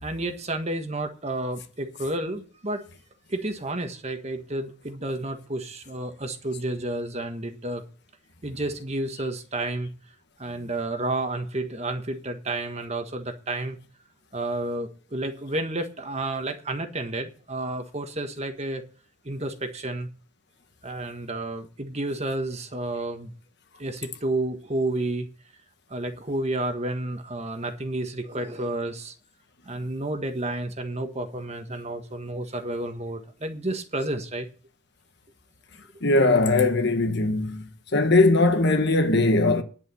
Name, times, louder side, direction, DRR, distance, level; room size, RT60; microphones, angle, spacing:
voice 1, 0.0-2.8 3.3-7.8 8.4-9.9 10.4-13.8 14.3-18.8 19.2-20.1 20.8-23.3 23.8-25.3 25.9-29.1 29.6-34.5 35.9-36.0, right 2 dB, 30° right, 1.4 m, -31 dB
voice 2, 36.0-37.6 37.9-39.6, left 2 dB, 55° left, 1.3 m, -20 dB
10.5 x 7.0 x 7.6 m
head